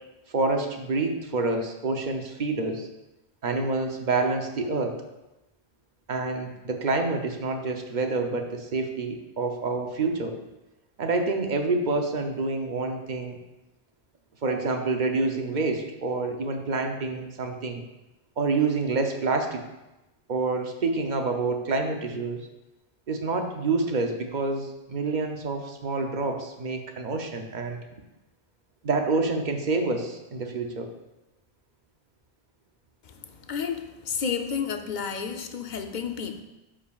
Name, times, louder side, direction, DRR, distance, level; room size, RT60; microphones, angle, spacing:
voice 1, 0.3-2.9 3.4-5.0 6.1-10.3 11.0-13.4 14.4-17.8 18.4-19.6 20.3-22.4 23.1-27.8 28.8-30.9, right 3 dB, 50° right, 4 dB, 0.8 m, -27 dB
voice 2, 33.0-36.4, left 6 dB, 55° left, 6 dB, 0.7 m, -31 dB
12.0 x 5.0 x 2.4 m, 0.99 s
omnidirectional pair, 1.1 m